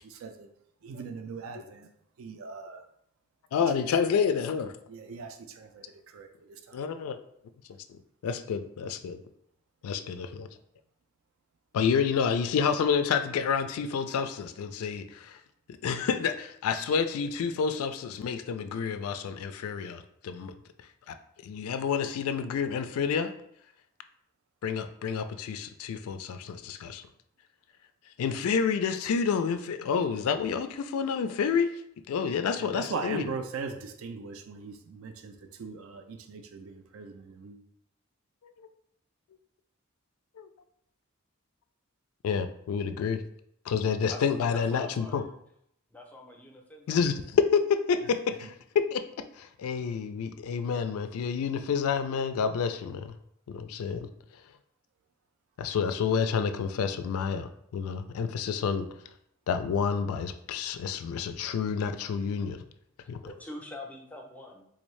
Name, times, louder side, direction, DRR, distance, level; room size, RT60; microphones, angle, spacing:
voice 1, 0.0-0.5 0.8-1.9 2.2-2.9 4.9-6.9 32.6-37.6, right 4 dB, 70° right, 7 dB, 0.4 m, -40 dB
voice 2, 3.5-4.7 6.7-7.2 8.2-9.2 9.8-10.5 11.7-15.4 15.8-20.5 21.1-21.2 21.4-23.3 24.6-27.0 28.2-31.8 32.1-33.2 38.4-38.7 40.4-40.5 42.2-43.2 43.7-45.2 46.9-49.0 49.3-53.1 53.5-54.1 55.6-58.9 59.5-62.6 63.1-63.3, left 6 dB, 90° left, 9 dB, 0.3 m, -29 dB
voice 3, 44.5-45.3 45.9-47.0 63.2-64.6, left 1 dB, 5° left, 1 dB, 0.5 m, -44 dB
3.7 x 2.6 x 3.1 m, 0.71 s
head